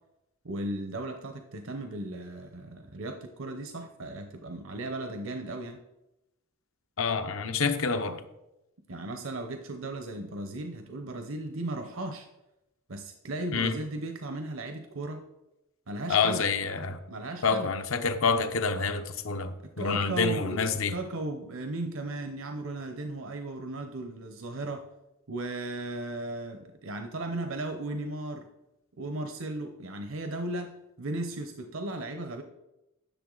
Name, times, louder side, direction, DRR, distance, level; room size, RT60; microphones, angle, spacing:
voice 1, 0.4-5.8 8.9-12.3 12.9-15.2 15.9-16.4 17.1-17.7 19.6-24.9 25.3-28.5 29.0-32.4, right 2 dB, 70° right, 6 dB, 0.7 m, -36 dB
voice 2, 7.0-8.2 13.5-13.7 16.1-17.0 17.4-19.5 19.8-20.9, left 5 dB, 70° left, 8 dB, 0.8 m, -27 dB
10.5 x 6.7 x 3.9 m, 0.93 s
head